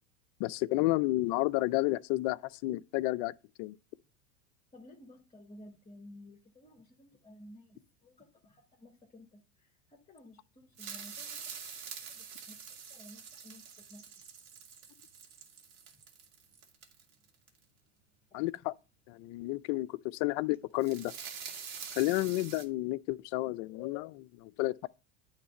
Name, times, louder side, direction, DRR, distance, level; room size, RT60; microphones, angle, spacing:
voice 1, 0.4-3.3 3.6-3.8 18.3-18.7 19.1-21.1 21.9-24.9, left 19 dB, 45° left, 0.5 m, -31 dB
voice 2, 4.7-11.5 12.0-14.0, left 1 dB, 15° left, 1.6 m, -55 dB
sound 1, 10.7-17.5 20.5-22.6, right 6 dB, 55° right, 2.0 m, -46 dB
9.3 x 3.3 x 6.6 m
hypercardioid pair, 110°, 38 cm